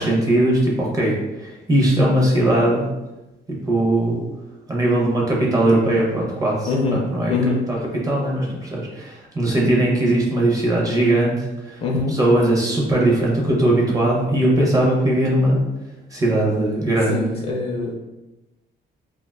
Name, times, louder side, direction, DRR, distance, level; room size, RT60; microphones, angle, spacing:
voice 1, 0.0-2.9 3.6-4.2 4.7-6.7 7.0-7.3 7.7-7.8 8.0-11.8 12.1-15.6 16.1-17.1, right 1 dB, 20° right, -3 dB, 0.5 m, -19 dB
voice 2, 6.7-7.0 7.3-7.6 11.8-12.1 17.1-17.9, left 3 dB, 35° left, -1 dB, 0.4 m, -23 dB
2.4 x 2.3 x 3.3 m, 1.0 s
cardioid pair, 180°, 18 cm